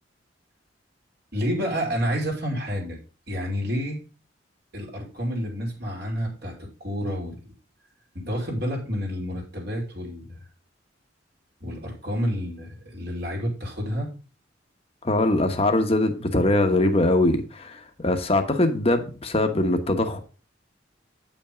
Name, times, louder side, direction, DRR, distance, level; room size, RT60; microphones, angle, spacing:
voice 1, 1.3-3.0 3.3-4.0 4.7-6.5 6.8-7.5 8.1-10.4 11.6-14.1, equal, 55° right, 2.8 m, -29 dB
voice 2, 15.0-20.2, left 2 dB, 30° left, 1.2 m, -22 dB
8.5 x 5.7 x 5.1 m
head